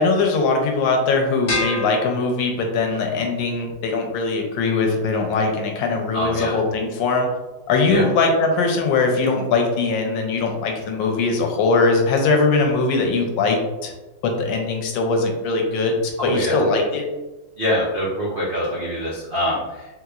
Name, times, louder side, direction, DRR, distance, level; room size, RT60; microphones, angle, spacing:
voice 1, 0.0-7.3 7.7-13.9 14.2-17.1, left 3 dB, 85° left, 2 dB, 1.3 m, -21 dB
sound 1, 1.5-3.0, left 2 dB, 50° left, 1.0 m, -28 dB
voice 2, 6.1-6.6 7.9-8.1 16.2-16.6 17.6-19.9, equal, 85° right, -7 dB, 0.4 m, -24 dB
3.3 x 2.9 x 2.4 m, 1.1 s
omnidirectional pair, 2.0 m